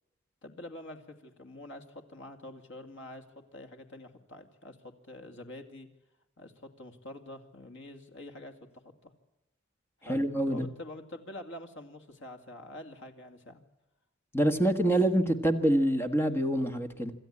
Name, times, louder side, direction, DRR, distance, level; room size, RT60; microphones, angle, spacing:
voice 1, 0.4-5.9 6.4-8.5 8.8-9.1 10.0-13.6, left 1 dB, 65° left, 5 dB, 2.5 m, -46 dB
voice 2, 10.1-10.7 14.3-17.1, right 1 dB, 10° left, 7 dB, 1.5 m, -26 dB
26.5 x 13.0 x 9.9 m, 0.94 s
head